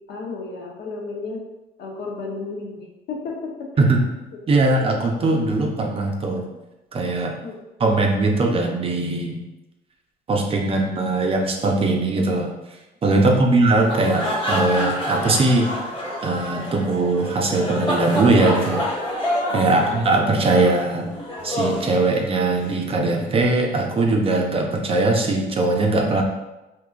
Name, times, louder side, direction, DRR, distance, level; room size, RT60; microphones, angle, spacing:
voice 1, 0.1-1.4 1.8-3.7 4.8-4.9 7.4-7.6 13.1-13.6 19.5-20.2, left 3 dB, 70° left, -1 dB, 0.8 m, -33 dB
voice 2, 4.5-6.4 6.9-7.3 7.8-9.4 10.3-15.7 16.2-18.8 19.5-21.1 21.4-26.2, right 2 dB, 35° right, 1 dB, 0.5 m, -20 dB
sound 1, 13.7-22.7, equal, 30° left, 1.1 m, -27 dB
3.7 x 2.7 x 2.4 m, 1.0 s
cardioid pair, 110°, 17 cm